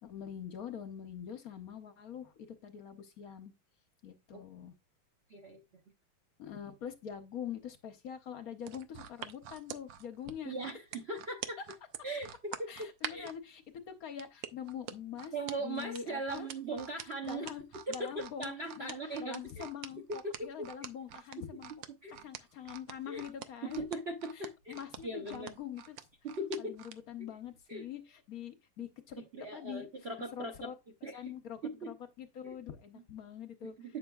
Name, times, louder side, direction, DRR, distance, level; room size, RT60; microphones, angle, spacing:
voice 1, 0.0-3.5 4.0-4.7 6.4-10.5 12.7-15.3 15.6-16.5 17.2-21.7 22.2-23.8 24.3-26.0 26.6-29.2 29.5-29.9 30.3-30.7 31.1-33.7, left 9 dB, 60° left, 0.9 m, -44 dB
voice 2, 5.3-5.6 10.4-11.6 12.0-12.7 13.1-13.3 15.3-17.5 18.0-19.7 20.2-20.5 21.4-21.5 22.0-22.3 23.1-23.2 23.9-25.5 26.2-26.8 27.7-27.9 29.2-30.7 31.0-31.2 31.8-31.9 32.4-32.5 33.8-34.0, right 2 dB, 50° right, 0.7 m, -39 dB
sound 1, 8.6-13.4 14.2-27.0 27.4-27.6, right 10 dB, 70° right, 1.3 m, -45 dB
8.7 x 6.1 x 2.3 m
omnidirectional pair, 2.3 m